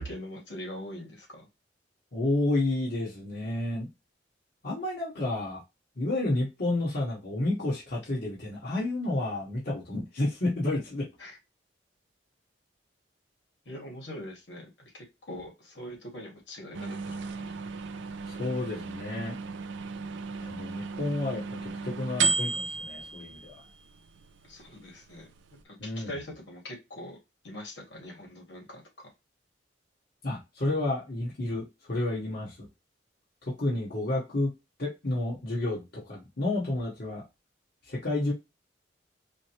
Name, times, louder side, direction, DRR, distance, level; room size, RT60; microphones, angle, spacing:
voice 1, 0.0-1.5 11.2-11.4 13.7-17.5 24.5-25.3 25.6-27.2 27.4-28.8, left 1 dB, 80° left, 0 dB, 2.1 m, -42 dB
voice 2, 2.1-3.9 4.6-5.6 6.0-11.1 18.3-19.4 20.4-23.5 25.8-26.1 30.2-32.7 33.5-34.5 34.8-37.2 37.9-38.3, left 2 dB, 60° left, -6 dB, 1.6 m, -30 dB
sound 1, 16.7-25.6, right 4 dB, 80° right, 0.4 m, -35 dB
5.0 x 2.1 x 2.9 m, 0.23 s
head